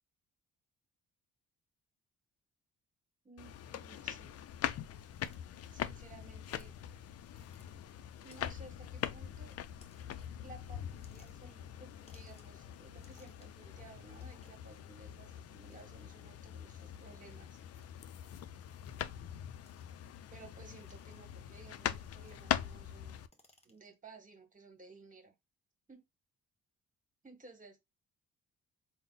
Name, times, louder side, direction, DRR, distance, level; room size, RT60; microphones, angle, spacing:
voice 1, 3.2-4.5 5.7-6.8 8.2-9.6 10.4-17.6 20.3-23.2 23.6-25.3 25.9-26.0 27.2-27.8, right 3 dB, 25° right, 1.6 m, -56 dB
sound 1, 3.4-23.3, left 10 dB, 55° left, 0.5 m, -43 dB
sound 2, 5.1-5.4 6.5-6.7 7.3-7.7 8.3-8.7 9.8-10.4 10.9-11.6 12.1-12.6 12.9-13.6 14.1-14.8 15.7-15.8 16.8-17.0 17.5-17.9 18.6-19.1 19.6-20.1 20.7-21.3 22.0-22.7 23.0-23.9, left 2 dB, 20° left, 1.0 m, -67 dB
3.8 x 2.1 x 3.9 m
cardioid pair, 90°, 30 cm